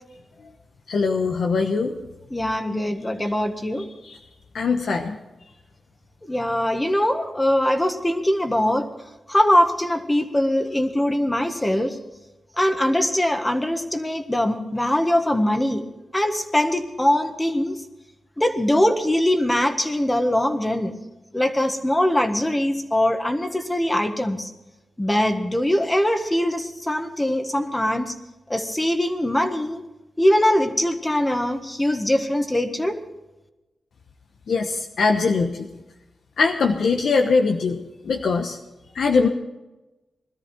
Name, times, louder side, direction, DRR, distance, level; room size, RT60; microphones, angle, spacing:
voice 1, 0.9-1.9 4.0-4.2 4.5-5.2 34.5-35.7 36.4-37.8 38.0-38.6 38.9-39.3, left 4 dB, 75° left, 3 dB, 1.1 m, -21 dB
voice 2, 2.3-3.9 6.3-8.9 9.3-12.0 12.6-15.8 16.1-17.7 18.4-21.0 21.3-24.5 25.0-28.1 28.5-29.8 30.2-33.0, left 1 dB, 15° left, 6 dB, 1.7 m, -22 dB
21.0 x 13.0 x 4.6 m, 1.0 s
cardioid pair, 90°, 0 cm